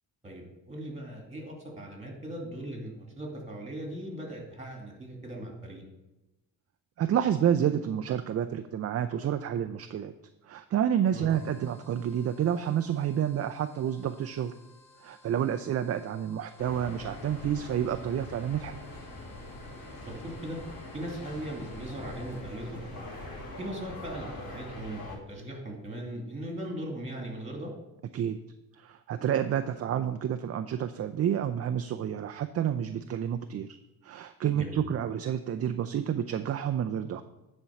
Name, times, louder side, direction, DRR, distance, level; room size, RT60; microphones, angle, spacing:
voice 1, 0.2-5.8 11.1-11.3 20.0-20.6 20.9-23.1 23.6-27.7 34.5-34.9, right 1 dB, 20° right, 1 dB, 2.5 m, -39 dB
voice 2, 7.0-10.1 10.5-14.5 15.0-18.8 28.1-28.4 28.8-33.7 34.0-37.2, right 9 dB, 40° right, 9 dB, 0.4 m, -29 dB
sound 1, 11.3-22.7, left 2 dB, 35° left, 3.2 m, -59 dB
sound 2, 16.6-25.2, left 2 dB, 75° left, 2.5 m, -43 dB
9.6 x 4.5 x 5.8 m, 1.0 s
cardioid pair, 110°, 37 cm